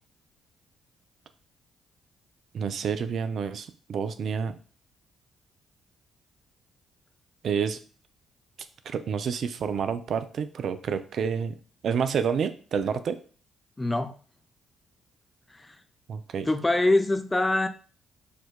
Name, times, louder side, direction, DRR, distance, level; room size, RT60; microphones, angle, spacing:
voice 1, 2.5-4.6 7.4-7.8 8.9-11.6 11.8-13.2 16.1-16.5, right 6 dB, 65° right, 11 dB, 0.3 m, -29 dB
voice 2, 13.8-14.1 15.5-15.7 16.5-17.7, left 2 dB, 20° left, 8 dB, 0.4 m, -24 dB
4.5 x 2.3 x 2.2 m, 0.41 s
hypercardioid pair, 50°, 0 cm